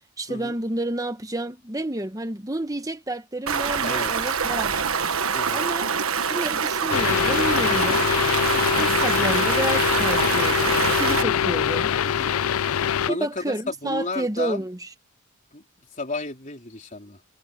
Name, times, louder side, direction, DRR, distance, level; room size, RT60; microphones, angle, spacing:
voice 1, 0.2-4.9 5.5-5.9 6.3-8.0 8.8-11.9 13.1-14.9, right 1 dB, 15° right, 1.2 m, -30 dB
Stream, 3.5-11.2, right 6 dB, 70° right, 1.4 m, -25 dB
voice 2, 5.3-5.7 8.5-8.8 11.1-11.4 12.0-12.3 13.1-14.6 15.5-15.6 15.9-17.2, left 3 dB, 35° left, 4.0 m, -33 dB
sound 1, 6.9-13.1, left 8 dB, 75° left, 0.5 m, -23 dB
head